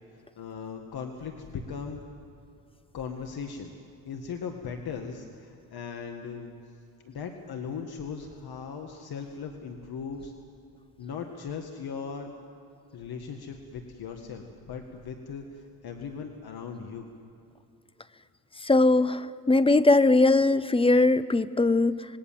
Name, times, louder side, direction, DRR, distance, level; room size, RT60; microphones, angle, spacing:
voice 1, 0.4-2.0 2.9-3.7 4.1-6.5 7.0-10.3 11.0-12.3 12.9-17.1, left 6 dB, 65° left, 4 dB, 1.9 m, -38 dB
voice 2, 18.6-22.1, left 2 dB, 15° left, 14 dB, 0.7 m, -21 dB
27.0 x 21.0 x 7.5 m, 2.8 s
cardioid pair, 115°, 40 cm